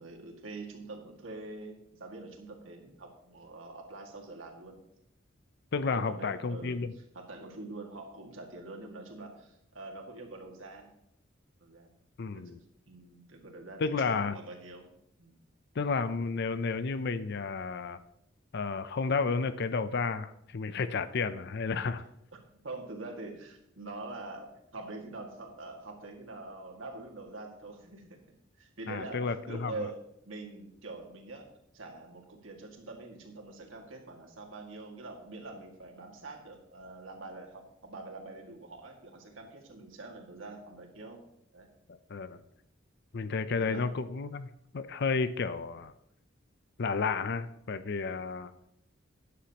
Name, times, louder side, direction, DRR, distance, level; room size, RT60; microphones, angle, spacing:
voice 1, 0.0-4.8 5.9-6.8 7.1-10.9 11.6-11.9 12.4-12.5 12.9-14.9 15.2-15.4 22.6-28.2 28.6-30.0 30.3-31.5 31.7-41.2 41.5-41.7 43.6-43.9, right 2 dB, 85° right, 1 dB, 2.0 m, -45 dB
voice 2, 5.7-6.9 12.2-12.6 13.8-14.4 15.8-18.0 18.5-22.0 28.9-29.7 41.9-42.4 43.1-45.9 46.8-48.5, left 4 dB, 60° left, 13 dB, 0.5 m, -32 dB
13.0 x 10.0 x 2.9 m, 0.77 s
head